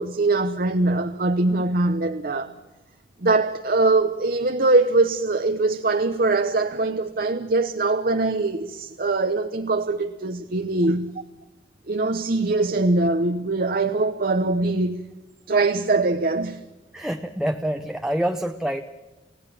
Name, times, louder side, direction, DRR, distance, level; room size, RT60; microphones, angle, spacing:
voice 1, 0.0-2.5 3.2-11.1 11.9-15.0 15.5-16.6, right 2 dB, 50° right, 0.9 m, -22 dB
voice 2, 16.9-18.8, equal, 5° right, 0.8 m, -26 dB
29.5 x 16.5 x 7.3 m
head